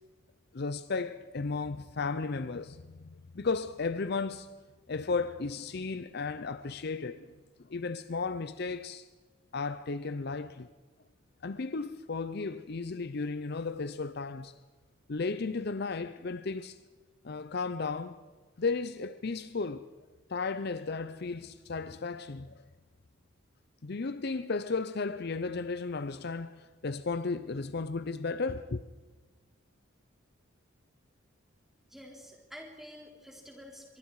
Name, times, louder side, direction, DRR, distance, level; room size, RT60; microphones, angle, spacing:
voice 1, 0.5-4.5 4.9-7.3 7.6-9.1 9.5-10.7 11.4-14.5 15.1-16.8 17.2-18.2 18.6-19.9 20.3-22.6 23.8-28.8, left 4 dB, 50° left, 0.6 m, -34 dB
voice 2, 31.9-34.0, equal, ahead, 3.9 m, -49 dB
25.0 x 23.0 x 4.8 m
head